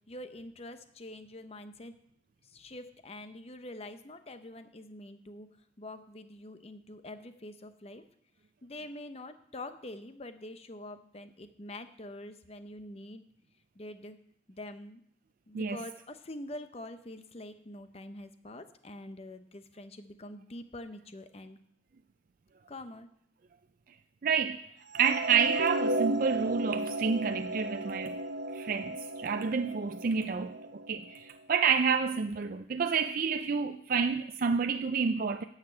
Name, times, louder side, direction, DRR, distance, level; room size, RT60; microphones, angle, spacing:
voice 1, 0.1-1.9 2.5-5.5 5.8-8.0 8.6-13.2 13.8-14.2 14.5-15.0 15.5-21.6 22.7-23.1, left 1 dB, 35° left, 0.8 m, -45 dB
voice 2, 24.2-24.7 24.9-28.2 28.5-35.4, right 6 dB, 50° right, 0.4 m, -29 dB
sound 1, 24.9-31.2, right 1 dB, 80° right, 0.9 m, -34 dB
9.5 x 6.7 x 8.4 m
head